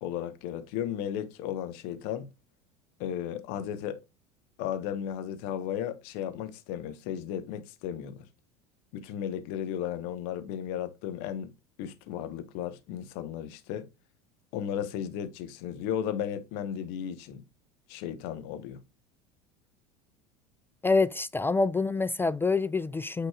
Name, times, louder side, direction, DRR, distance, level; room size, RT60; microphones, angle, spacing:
voice 1, 0.0-2.3 3.0-4.0 4.6-8.3 8.9-11.5 11.8-13.9 14.5-17.4 17.9-18.8, left 9 dB, 55° left, 1.1 m, -35 dB
voice 2, 20.8-23.3, left 3 dB, 10° left, 0.3 m, -26 dB
8.7 x 5.2 x 2.4 m
figure-of-eight pair, 75°, 21 cm